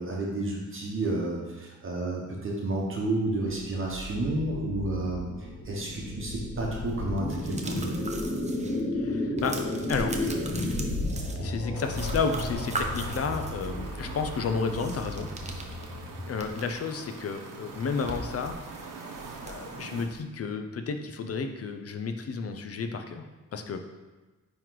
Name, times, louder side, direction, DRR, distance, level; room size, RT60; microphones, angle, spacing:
voice 1, 0.0-8.0, right 2 dB, 40° right, -2 dB, 1.0 m, -31 dB
Big ship flyby, 3.6-16.6, left 1 dB, 65° left, 2.1 m, -34 dB
sound 1, 6.9-8.8 9.1-11.7 11.9-13.7 14.7-16.8 17.2-17.3 17.6-20.2, right 2 dB, 20° right, 0.6 m, -39 dB
voice 2, 8.9-9.6 9.9-10.2 11.3-15.3 16.3-18.6 19.4-23.2 23.5-23.8, left 5 dB, 50° left, 7 dB, 0.6 m, -32 dB
sound 2, 11.7-20.0, right 4 dB, 75° right, 1.0 m, -43 dB
9.2 x 3.1 x 3.9 m, 1.2 s
wide cardioid pair, 140°, 32 cm